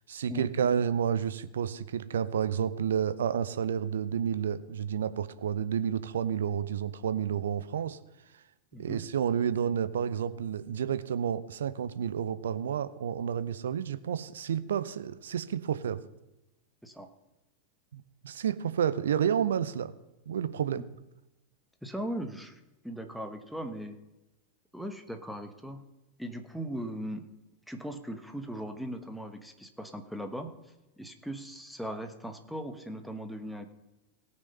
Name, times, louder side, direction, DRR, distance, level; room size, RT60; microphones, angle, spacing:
voice 1, 0.1-8.0 8.3-8.4 8.8-16.0 17.9-19.9 20.3-20.8, right 8 dB, 65° right, 14 dB, 0.7 m, -30 dB
voice 2, 8.7-9.0 16.8-17.1 20.8-20.9 21.8-24.0 24.7-25.8 26.2-27.3 27.7-30.5 31.0-33.7, equal, ahead, 7 dB, 1.3 m, -39 dB
18.0 x 6.5 x 5.6 m, 0.97 s
figure-of-eight pair, 90°, 0 cm